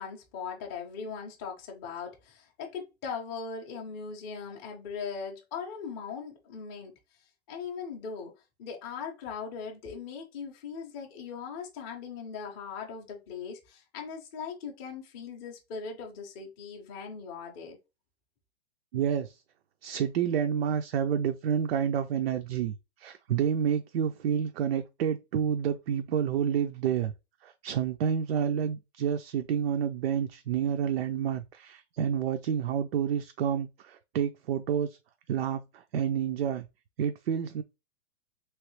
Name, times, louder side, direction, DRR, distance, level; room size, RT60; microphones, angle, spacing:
voice 1, 0.0-6.9 7.5-8.3 8.6-17.8, left 6 dB, 15° left, 0.5 m, -39 dB
voice 2, 18.9-19.4 19.8-27.1 27.4-35.0 35.3-36.7 37.0-37.6, right 8 dB, 65° right, 0.5 m, -29 dB
3.1 x 2.8 x 3.1 m
hypercardioid pair, 160°, 34 cm